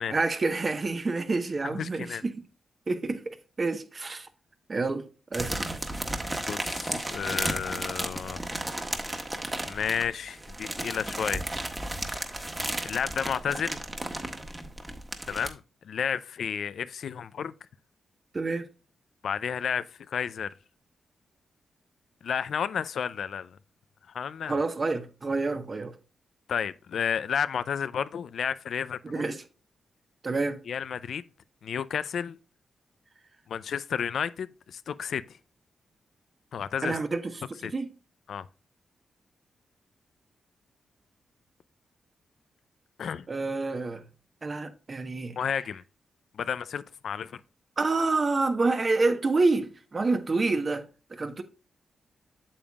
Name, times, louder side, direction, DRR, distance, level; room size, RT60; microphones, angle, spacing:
voice 1, 0.1-2.4 2.9-4.3 4.7-5.7 18.3-18.7 24.4-25.9 29.0-29.4 30.2-30.6 36.8-37.3 37.6-37.9 43.3-44.0 44.4-45.5 47.8-51.4, right 3 dB, 40° right, 1.1 m, -28 dB
voice 2, 1.6-2.2 6.5-8.4 9.7-11.5 12.1-12.4 12.8-13.8 15.3-17.5 19.2-20.5 22.2-23.6 24.1-24.6 26.5-29.3 30.7-31.2 31.6-32.4 33.5-35.2 36.5-37.0 37.6-37.7 38.3-38.5 43.0-43.3 45.4-45.8 46.3-47.4, left 7 dB, 75° left, 0.4 m, -32 dB
sound 1, 5.3-15.5, right 1 dB, 20° right, 1.4 m, -34 dB
8.6 x 7.0 x 2.4 m
cardioid pair, 65°, 0 cm